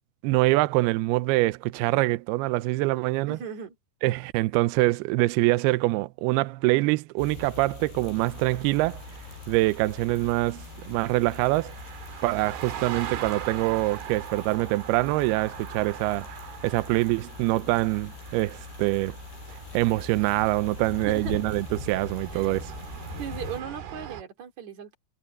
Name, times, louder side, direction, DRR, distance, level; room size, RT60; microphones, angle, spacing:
voice 1, 0.2-3.4 4.0-9.0 9.5-11.7 12.2-16.3 16.6-19.2 19.5-22.7, right 20 dB, 85° right, 2.3 m, -25 dB
voice 2, 3.3-3.8 21.1-21.4 22.3-22.5 23.2-25.0, right 8 dB, 45° right, 3.6 m, -37 dB
sound 1, 7.2-23.6, left 5 dB, 65° left, 7.9 m, -42 dB
sound 2, 8.2-24.2, right 9 dB, 65° right, 3.9 m, -42 dB
omnidirectional pair, 5.2 m